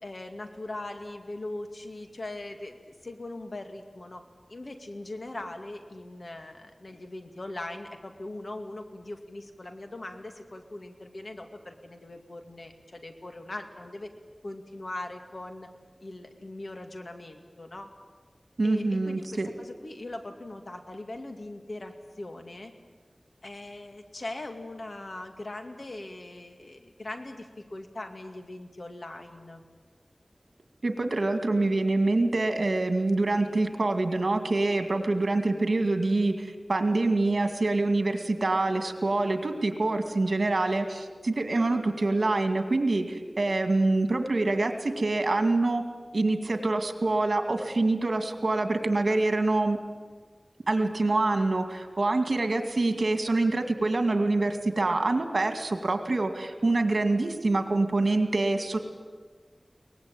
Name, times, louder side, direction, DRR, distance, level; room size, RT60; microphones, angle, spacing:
voice 1, 0.0-4.2 4.5-14.1 14.4-15.7 16.0-17.9 18.6-22.7 23.4-29.6, left 2 dB, 65° left, 5 dB, 2.4 m, -40 dB
voice 2, 18.6-19.5 30.8-45.8 46.1-49.8 50.7-58.8, right 2 dB, 75° right, 6 dB, 2.2 m, -25 dB
23.5 x 19.5 x 9.0 m, 1.5 s
wide cardioid pair, 65°, 0 cm